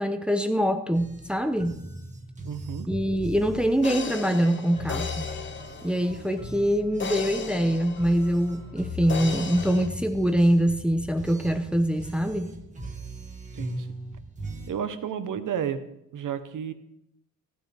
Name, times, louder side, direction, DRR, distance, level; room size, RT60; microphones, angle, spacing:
voice 1, 0.0-1.8 2.8-5.2 5.8-12.5, equal, 5° right, 7 dB, 0.8 m, -24 dB
sound 1, 0.9-14.7, equal, 20° right, 1.7 m, -39 dB
voice 2, 2.4-2.9 13.5-13.9 14.7-15.8 16.1-16.7, right 8 dB, 70° right, 10 dB, 1.1 m, -31 dB
sound 2, 3.8-6.4 7.0-8.7 9.1-9.9, left 5 dB, 35° left, 0.9 m, -36 dB
15.0 x 9.7 x 3.5 m, 0.80 s
cardioid pair, 105°, 33 cm